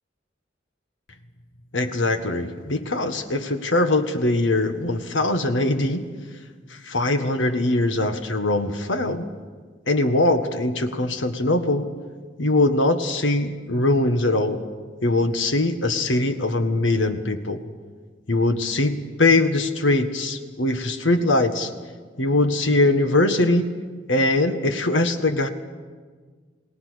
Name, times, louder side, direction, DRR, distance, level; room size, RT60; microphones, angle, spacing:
voice 1, 1.7-6.0 6.9-9.3 9.9-11.9 12.4-14.6 15.0-17.6 18.3-21.7 22.2-23.7 24.1-25.5, left 2 dB, 85° left, 7 dB, 1.7 m, -21 dB
29.5 x 18.5 x 6.5 m, 1.5 s
head